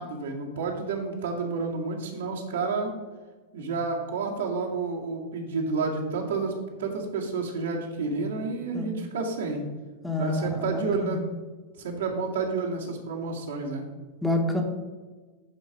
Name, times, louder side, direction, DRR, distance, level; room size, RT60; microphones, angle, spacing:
voice 1, 0.0-2.9 3.5-9.7 10.2-11.2 11.8-13.9, right 4 dB, 70° right, -2 dB, 2.0 m, -30 dB
voice 2, 10.0-11.2 14.2-14.6, left 1 dB, 5° left, 1 dB, 1.4 m, -28 dB
10.0 x 4.8 x 4.9 m, 1.3 s
figure-of-eight pair, 95°, 0 cm